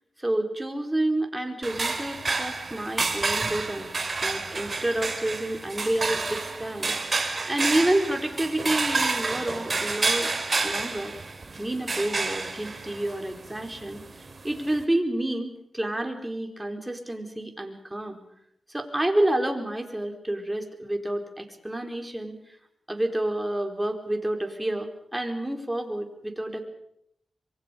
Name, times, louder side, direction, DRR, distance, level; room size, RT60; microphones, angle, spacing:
voice 1, 0.2-3.9 4.2-10.3 10.6-11.1 11.6-18.2 18.7-22.3 22.9-26.7, right 1 dB, 15° right, 4 dB, 4.5 m, -29 dB
sound 1, 1.6-14.8, right 3 dB, 45° right, 3.1 m, -30 dB
26.0 x 23.5 x 5.3 m, 0.72 s
cardioid pair, 55°, 0 cm